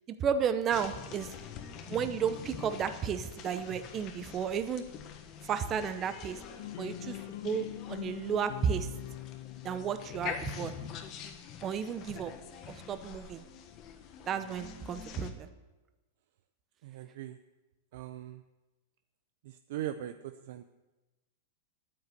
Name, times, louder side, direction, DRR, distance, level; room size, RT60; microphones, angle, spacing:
voice 1, 0.1-1.3 1.9-4.8 5.4-6.4 6.8-7.2 7.4-8.9 9.6-10.7 11.6-12.3 12.7-13.4 14.3-15.5, right 7 dB, 20° right, 11 dB, 0.7 m, -33 dB
sound 1, 0.7-15.3, left 8 dB, 30° left, 1.2 m, -45 dB
sound 2, 6.6-10.6, left 14 dB, 60° left, 0.7 m, -43 dB
voice 2, 16.8-17.4 17.9-18.4 19.4-20.6, right 12 dB, 60° right, 10 dB, 0.6 m, -40 dB
9.6 x 9.3 x 8.3 m, 1.1 s
supercardioid pair, 160°, 0 cm